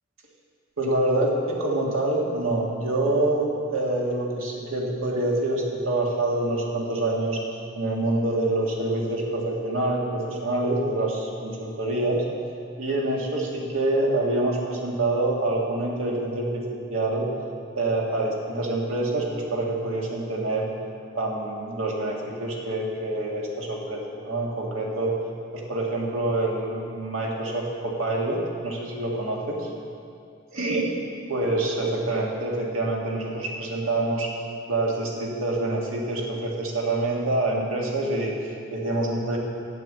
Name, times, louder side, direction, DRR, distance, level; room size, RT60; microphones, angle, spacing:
voice 1, 0.8-7.4 7.8-12.2 12.8-16.6 16.9-17.3 17.7-20.7 21.1-25.1 25.5-29.7 30.5-30.8 31.3-34.3 34.7-39.4, right 2 dB, 90° right, -2 dB, 2.0 m, -26 dB
9.1 x 7.9 x 7.8 m, 2.4 s
head